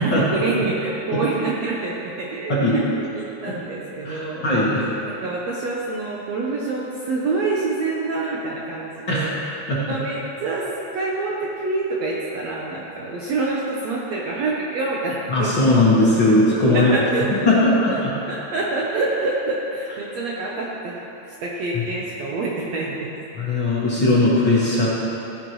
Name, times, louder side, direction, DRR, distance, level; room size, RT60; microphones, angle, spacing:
voice 1, 0.0-4.5 5.0-9.4 9.9-15.8 16.2-16.3 16.7-17.5 17.9-21.0 21.4-23.1, right 3 dB, 70° right, -4 dB, 1.7 m, -26 dB
voice 2, 4.0-4.8 9.1-9.3 9.7-9.8 15.3-16.9 17.5-18.1 23.4-24.9, left 2 dB, 45° left, -8 dB, 1.8 m, -18 dB
15.5 x 11.0 x 3.1 m, 2.9 s
omnidirectional pair, 3.9 m